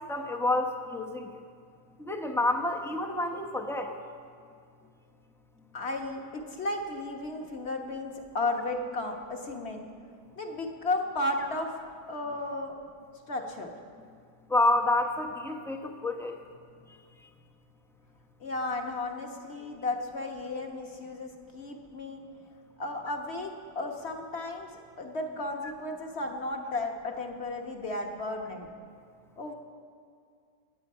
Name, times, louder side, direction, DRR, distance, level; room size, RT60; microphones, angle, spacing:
voice 1, 0.1-1.4 2.0-3.9 14.5-16.4, left 2 dB, 5° left, 2 dB, 0.5 m, -28 dB
voice 2, 5.7-9.8 10.4-11.7 12.1-12.8 13.3-13.7 18.4-22.2 22.8-24.7 25.0-28.7 29.4-29.5, left 2 dB, 40° left, 3 dB, 1.4 m, -34 dB
23.0 x 9.3 x 5.6 m, 2.2 s
omnidirectional pair, 1.8 m